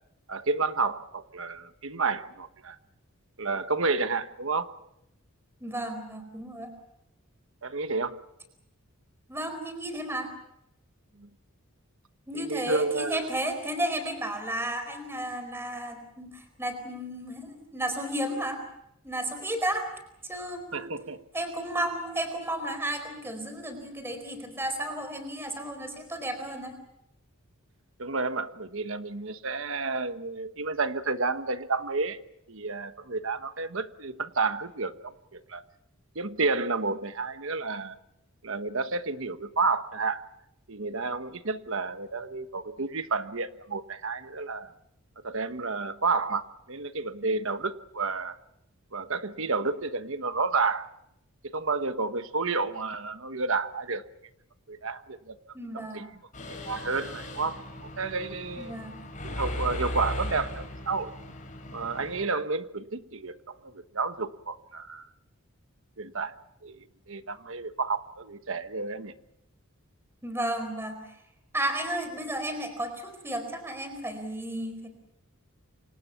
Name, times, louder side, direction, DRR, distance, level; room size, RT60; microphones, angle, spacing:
voice 1, 0.3-2.8 3.4-4.7 7.6-8.2 11.2-11.3 12.3-13.2 20.7-21.2 28.0-32.2 32.5-35.6 36.1-38.0 38.4-40.2 40.7-44.7 45.2-48.4 48.9-50.9 51.5-54.0 54.7-55.4 55.7-56.1 56.4-58.7 59.2-61.1 61.7-65.1 66.0-66.3 66.6-69.1, right 4 dB, 60° right, 10 dB, 1.3 m, -31 dB
voice 2, 5.6-6.7 9.3-10.3 12.3-18.6 19.0-19.9 20.2-20.9 21.3-26.8 55.5-56.1 58.6-59.0 70.2-71.1 71.5-74.9, right 1 dB, 10° right, 7 dB, 4.5 m, -33 dB
Mechanisms, 56.3-62.2, left 1 dB, 35° left, 6.5 m, -37 dB
29.0 x 26.0 x 5.9 m, 0.80 s
head